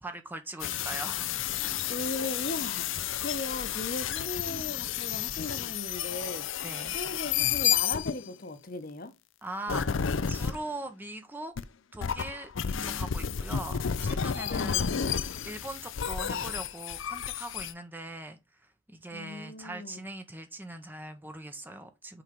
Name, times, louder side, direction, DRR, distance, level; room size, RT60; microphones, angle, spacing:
voice 1, 0.0-1.4 1.7-1.9 6.6-6.9 9.4-11.5 11.9-12.5 12.8-15.0 15.4-22.2, right 1 dB, 10° right, 0.8 m, -41 dB
sound 1, 0.6-8.3 9.7-10.6 11.6-11.7 12.0-17.7, left 8 dB, 65° left, 0.5 m, -31 dB
voice 2, 1.9-6.5 6.9-9.1 12.7-13.4 14.4-15.0 19.1-20.0, left 2 dB, 45° left, 1.0 m, -38 dB
5.9 x 4.5 x 5.2 m
head